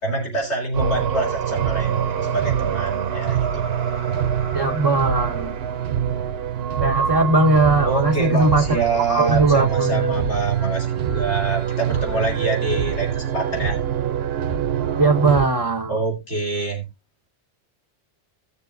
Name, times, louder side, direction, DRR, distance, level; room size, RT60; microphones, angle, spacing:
voice 1, 0.0-2.0 2.3-3.6 7.8-13.8 15.9-16.8, right 3 dB, 75° left, 3.4 m, -26 dB
sound 1, 0.7-15.5, right 9 dB, 65° right, 0.9 m, -24 dB
voice 2, 4.5-5.5 6.8-8.7 9.1-10.3 15.0-15.9, right 2 dB, 25° right, 0.7 m, -19 dB
16.5 x 6.7 x 2.6 m
omnidirectional pair, 1.2 m